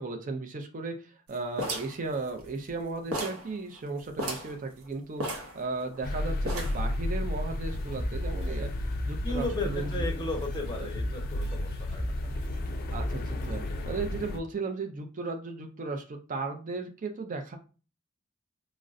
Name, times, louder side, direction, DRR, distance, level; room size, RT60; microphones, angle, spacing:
voice 1, 0.0-8.7 9.0-9.9 10.8-10.9 12.9-17.6, right 3 dB, 40° right, 5 dB, 0.5 m, -36 dB
sound 1, 1.6-2.8 3.1-3.5 3.8-3.9 4.1-4.6 5.2-6.0 6.5-6.9, equal, 80° right, 0.7 m, -34 dB
sound 2, 6.0-14.4, left 1 dB, 45° left, 0.4 m, -34 dB
sound 3, 7.7-13.8, equal, 5° left, 1.6 m, -36 dB
voice 2, 9.2-12.1, left 2 dB, 20° left, 2 dB, 0.8 m, -35 dB
3.7 x 2.0 x 2.4 m, 0.34 s
head